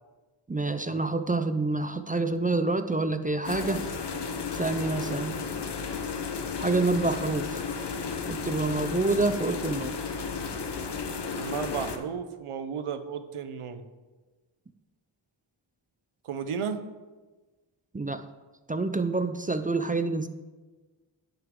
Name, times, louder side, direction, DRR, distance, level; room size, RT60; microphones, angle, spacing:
voice 1, 0.5-3.9 4.5-5.4 6.6-7.6 8.3-9.9 17.9-18.2 18.7-20.3, right 3 dB, 20° right, 9 dB, 0.4 m, -27 dB
sound 1, 3.4-12.0, left 5 dB, 55° left, 0.9 m, -33 dB
voice 2, 11.4-13.8 16.2-16.8, right 7 dB, 90° right, 10 dB, 0.8 m, -34 dB
10.5 x 6.5 x 3.7 m, 1.3 s
wide cardioid pair, 80°, 49 cm